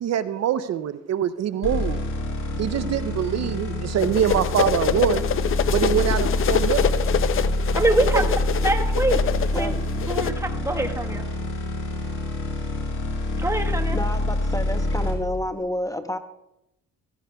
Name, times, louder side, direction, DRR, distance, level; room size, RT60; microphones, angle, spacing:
voice 1, 0.0-2.0 2.6-5.2 5.7-6.9 8.1-8.3, right 10 dB, 60° right, 13 dB, 0.6 m, -24 dB
sound 1, 1.6-15.1, left 1 dB, 85° left, 4.2 m, -26 dB
sound 2, 4.0-10.3, left 9 dB, 45° left, 0.5 m, -25 dB
voice 2, 7.7-9.2 9.5-9.7 10.1-11.3 13.4-14.0, right 2 dB, 10° right, 4 dB, 1.3 m, -24 dB
voice 3, 13.9-16.2, left 1 dB, 10° left, 8 dB, 0.7 m, -29 dB
15.5 x 15.0 x 2.3 m, 0.88 s
cardioid pair, 90°, 30 cm